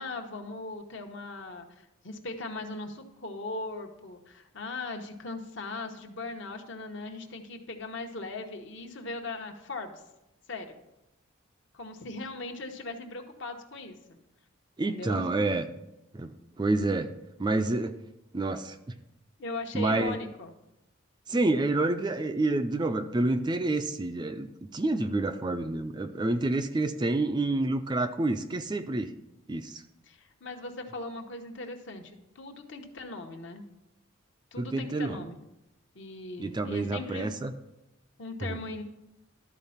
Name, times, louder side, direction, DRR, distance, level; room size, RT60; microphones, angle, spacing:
voice 1, 0.0-10.0 10.5-10.8 11.7-13.9 14.8-15.3 19.4-20.5 30.1-33.6 34.5-35.4 35.9-37.3 38.2-38.8, left 2 dB, 55° left, 4 dB, 1.0 m, -39 dB
voice 2, 14.8-15.6 16.1-17.1 17.4-18.0 18.3-18.8 19.7-20.1 21.3-29.1 29.5-29.8 34.6-35.3 36.4-37.5 38.4-38.6, right 2 dB, 20° right, 8 dB, 0.3 m, -28 dB
12.5 x 4.2 x 5.6 m, 0.90 s
head